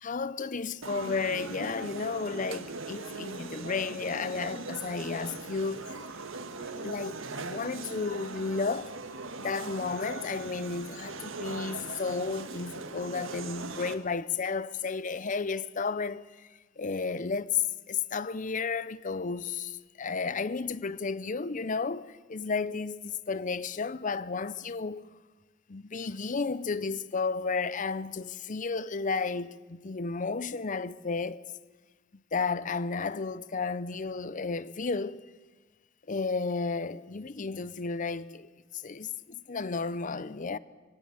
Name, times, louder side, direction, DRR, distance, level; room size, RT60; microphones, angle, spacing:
voice 1, 0.0-5.9 6.8-8.9 9.4-16.2 16.8-17.5 17.9-25.0 25.7-31.4 32.3-35.2 36.1-38.5 38.7-39.1 39.5-40.6, left 4 dB, 40° left, 0.6 m, -33 dB
sound 1, 0.8-13.9, right 3 dB, 80° right, 1.6 m, -40 dB
23.0 x 16.5 x 8.0 m
head